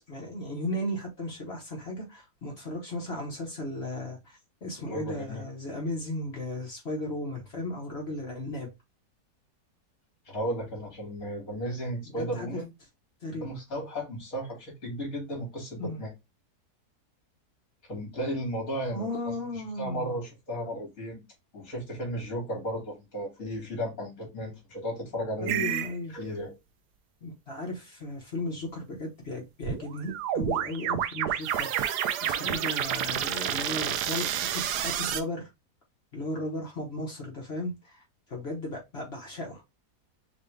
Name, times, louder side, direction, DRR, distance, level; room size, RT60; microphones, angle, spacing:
voice 1, 0.1-8.7 12.1-12.6 13.2-13.6 15.8-16.0 18.9-20.2 25.4-26.2 27.2-35.5 36.1-38.0 38.3-39.6, left 1 dB, 45° left, 1.4 m, -35 dB
voice 2, 4.9-5.4 10.3-12.7 13.3-16.1 17.9-21.2 21.5-25.7 26.1-26.6, equal, 60° left, 2.8 m, -35 dB
sound 1, 25.5-25.9 29.6-35.2, right 10 dB, 90° right, 1.2 m, -29 dB
5.8 x 2.5 x 3.2 m
omnidirectional pair, 1.7 m